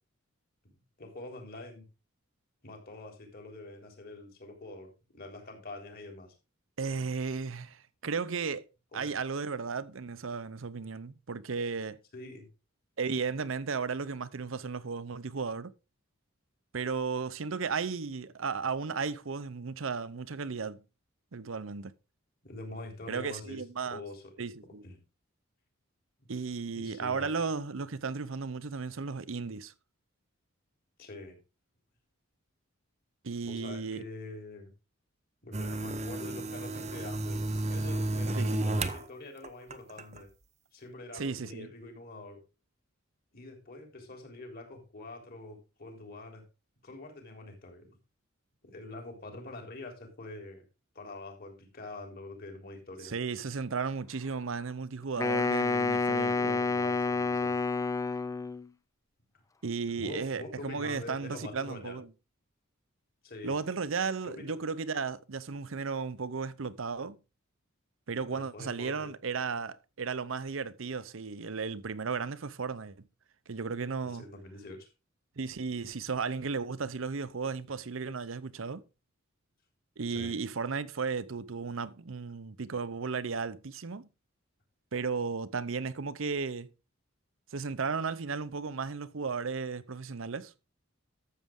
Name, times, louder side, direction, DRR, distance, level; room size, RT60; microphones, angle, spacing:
voice 1, 0.6-1.8 2.6-6.3 8.9-9.1 12.1-12.5 22.4-23.6 23.9-24.3 24.8-25.0 26.2-26.3 26.7-27.3 31.0-31.4 33.4-34.7 35.4-40.3 40.7-42.4 43.3-46.4 46.8-48.0 48.6-50.6 51.0-53.1 56.4-57.6 60.0-62.0 63.2-63.6 64.2-64.5 68.4-69.1 74.0-74.9 80.1-80.4, left 2 dB, 45° left, 3.6 m, -45 dB
voice 2, 6.8-8.6 8.9-12.0 13.0-15.7 16.7-20.8 21.3-21.9 23.1-24.0 24.4-24.8 26.3-29.7 33.2-34.0 38.3-38.7 41.1-41.7 53.0-56.7 59.6-62.1 63.4-67.2 68.1-73.0 73.5-74.2 75.4-78.8 80.0-84.1 84.9-86.7 87.5-90.5, right 5 dB, 65° right, 0.7 m, -35 dB
sound 1, 35.5-39.0 39.4-40.2, right 2 dB, 30° right, 0.9 m, -32 dB
Wind instrument woodwind instrument, 55.2-58.7, left 3 dB, 15° left, 0.4 m, -29 dB
12.5 x 7.5 x 3.7 m
head